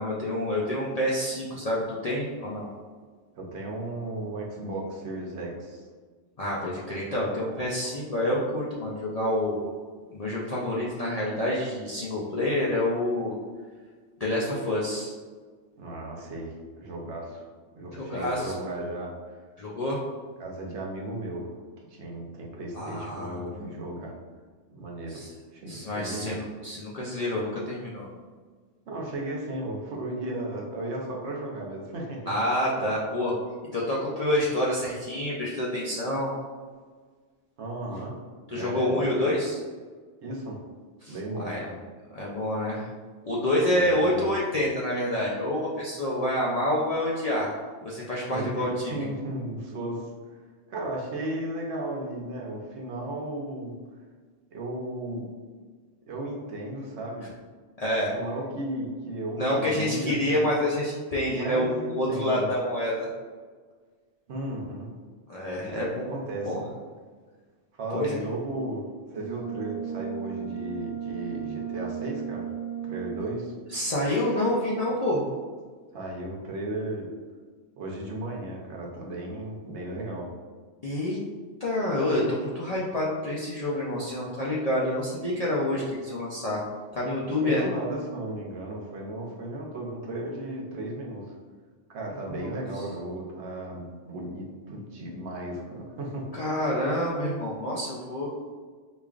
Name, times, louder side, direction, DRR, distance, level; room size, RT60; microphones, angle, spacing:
voice 1, 0.0-2.7 6.4-9.7 10.1-13.3 14.2-15.1 17.9-18.5 19.6-20.0 22.7-23.6 25.1-25.3 25.7-28.1 32.3-33.3 33.7-36.3 38.5-39.6 41.0-41.6 42.1-42.9 43.2-47.6 47.8-49.0 57.8-58.1 59.4-63.1 65.3-66.1 66.5-66.6 67.9-68.2 73.7-75.2 80.8-81.2 81.6-86.6 86.9-87.6 92.3-92.8 96.3-98.3, left 1 dB, 55° left, -6 dB, 0.4 m, -28 dB
voice 2, 3.4-5.9 7.8-7.9 15.8-17.4 17.7-19.1 20.4-24.1 24.7-25.2 25.5-26.4 28.9-32.3 37.6-38.1 38.5-39.0 40.2-40.6 41.1-41.8 43.7-44.3 48.3-50.4 50.7-53.8 54.5-55.3 56.1-57.3 58.1-60.6 61.3-62.5 64.3-64.9 65.6-65.8 66.0-66.5 67.8-68.8 69.1-72.5 72.8-73.5 75.9-77.1 77.8-80.3 87.4-91.3 91.9-96.2, right 1 dB, 70° right, -2 dB, 1.0 m, -35 dB
Brass instrument, 69.1-73.4, right 9 dB, 55° right, 0.6 m, -35 dB
4.9 x 2.4 x 2.4 m, 1.5 s
omnidirectional pair, 1.3 m